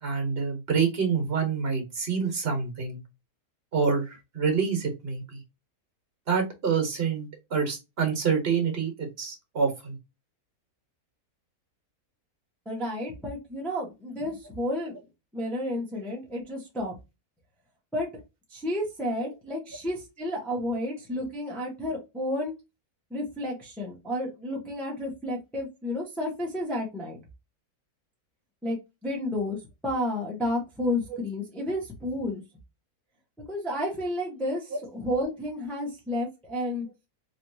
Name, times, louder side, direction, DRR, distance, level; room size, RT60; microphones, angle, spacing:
voice 1, 0.0-3.0 3.7-5.4 6.3-10.0 31.1-31.2 34.7-34.8, right 5 dB, 45° right, 4 dB, 1.4 m, -27 dB
voice 2, 12.7-14.9 15.3-16.9 17.9-18.1 18.5-22.5 23.1-27.2 28.6-29.6 29.8-32.4 33.5-36.9, left 1 dB, ahead, -2 dB, 0.9 m, -31 dB
3.1 x 3.1 x 2.7 m, 0.24 s
omnidirectional pair, 1.6 m